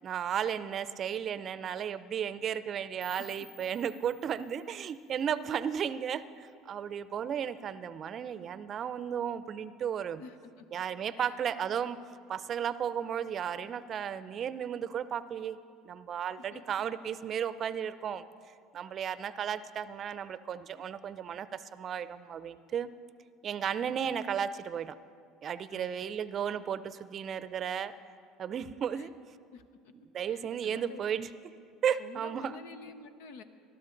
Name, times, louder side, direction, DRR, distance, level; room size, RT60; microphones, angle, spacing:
voice 1, 0.0-10.2 10.7-12.0 12.3-15.6 15.8-18.2 18.7-22.9 23.4-25.0 25.4-27.9 28.4-29.1 30.1-31.3 31.8-32.6, right 8 dB, 45° right, 15 dB, 0.5 m, -34 dB
sound 1, 3.0-5.9, left 2 dB, 20° left, 0.7 m, -56 dB
voice 2, 10.2-10.6 11.2-11.4 16.5-16.6 23.8-23.9 25.7-26.2 28.9-29.1 29.5-29.6 30.2-31.0 32.0-33.4, left 4 dB, 80° left, 10 dB, 0.9 m, -49 dB
20.0 x 12.0 x 3.9 m, 2.4 s
hypercardioid pair, 80°, 0 cm